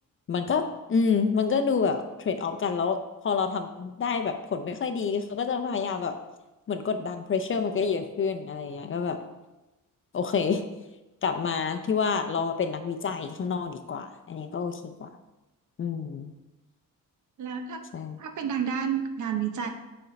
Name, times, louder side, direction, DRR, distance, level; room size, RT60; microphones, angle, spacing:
voice 1, 0.3-6.2 6.7-9.2 10.1-10.6 11.2-15.1 15.8-16.3 17.9-18.2, left 5 dB, 40° left, 7 dB, 0.5 m, -28 dB
voice 2, 17.4-17.8 18.2-19.7, right 7 dB, 60° right, 6 dB, 0.8 m, -30 dB
8.0 x 4.4 x 5.1 m, 1.0 s
wide cardioid pair, 175°, 34 cm